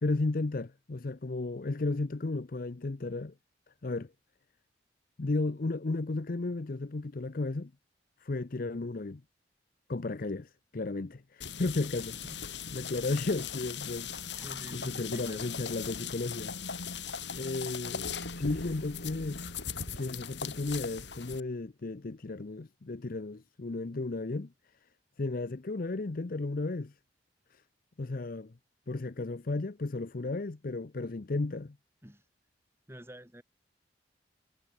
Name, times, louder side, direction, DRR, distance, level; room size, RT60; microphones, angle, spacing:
voice 1, 0.0-3.3 3.8-4.1 5.2-7.7 8.2-9.2 9.9-12.2 12.7-14.4 14.7-19.5 20.0-24.5 25.2-27.0 27.5-27.6 28.0-28.5 28.9-31.8, left 2 dB, 50° left, 0.6 m, -34 dB
sound 1, 11.4-21.4, left 6 dB, 75° left, 5.2 m, -39 dB
voice 2, 11.9-12.4 14.3-15.5 32.0-32.2 32.9-33.4, equal, 15° right, 5.9 m, -48 dB
head